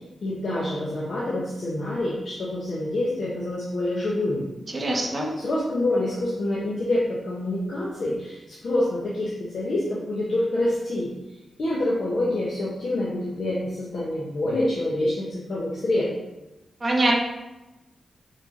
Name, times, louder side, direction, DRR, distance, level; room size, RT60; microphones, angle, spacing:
voice 1, 0.2-4.4 5.4-11.1 11.6-16.1, left 1 dB, 50° left, -6 dB, 1.4 m, -26 dB
voice 2, 4.7-5.3 16.8-17.1, right 2 dB, 25° right, -2 dB, 1.4 m, -23 dB
6.7 x 4.9 x 5.1 m, 1.0 s
wide cardioid pair, 170°, 0 cm